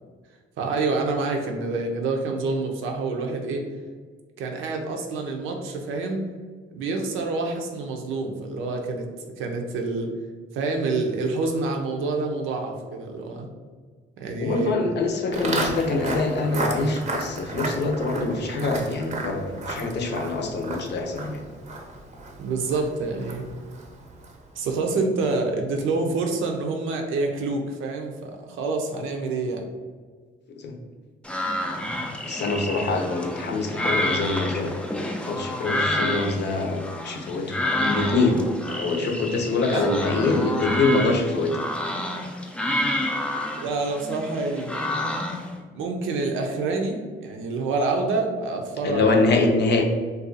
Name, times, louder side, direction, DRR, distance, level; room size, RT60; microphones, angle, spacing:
voice 1, 0.6-3.6 4.4-6.2 6.7-9.1 9.4-10.1 10.5-13.5 14.2-14.7 22.4-23.4 24.6-29.7 39.7-39.8 43.6-44.9 45.7-49.5, right 3 dB, 85° right, 3 dB, 0.6 m, -27 dB
voice 2, 14.4-21.4 30.6-30.7 32.2-34.7 35.3-38.4 38.7-41.5 48.8-49.9, left 3 dB, 60° left, 3 dB, 0.6 m, -24 dB
Walk footsteps, 15.3-24.5, right 2 dB, 35° right, 0.6 m, -33 dB
sound 1, 31.2-45.5, left 1 dB, 5° left, 0.3 m, -29 dB
2.6 x 2.3 x 3.9 m, 1.5 s
cardioid pair, 90°, 20 cm